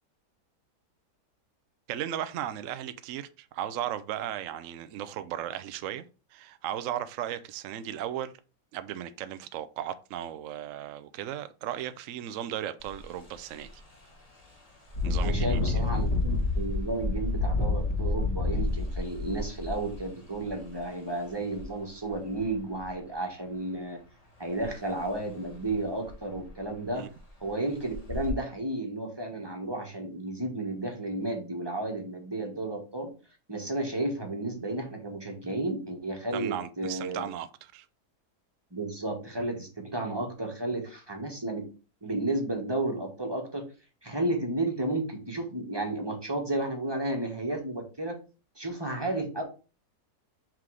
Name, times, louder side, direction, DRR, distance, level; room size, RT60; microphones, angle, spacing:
voice 1, 1.9-6.0 6.3-8.3 8.7-13.7 15.0-15.6 26.9-27.1 36.3-37.8, right 11 dB, 65° right, 0.8 m, -36 dB
Engine, 12.8-13.0 13.5-13.6 14.9-20.6 21.5-21.6 22.1-22.8 24.6-24.7 25.1-25.2 25.7-25.8 26.1-26.6 27.1-27.3 27.9-28.3, left 3 dB, 25° left, 1.5 m, -29 dB
voice 2, 15.2-24.0 24.4-27.0 27.4-33.1 33.5-37.3 38.7-41.6 42.0-43.6 44.0-48.2 48.5-49.4, right 2 dB, 15° right, 1.3 m, -32 dB
6.0 x 3.7 x 4.8 m
omnidirectional pair, 1.7 m